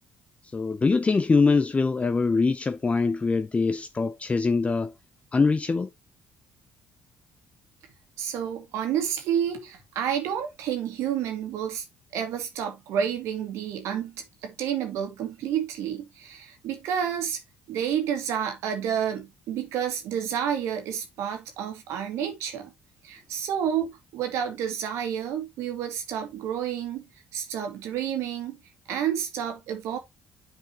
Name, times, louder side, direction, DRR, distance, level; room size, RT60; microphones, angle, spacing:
voice 1, 0.5-4.9 5.3-5.9, left 4 dB, 25° left, 0.5 m, -23 dB
voice 2, 8.2-11.9 12.1-17.4 17.7-22.7 23.0-27.0 27.3-28.6 28.9-30.0, right 9 dB, 75° right, 1.9 m, -30 dB
8.8 x 4.7 x 2.9 m
hypercardioid pair, 60°, 5 cm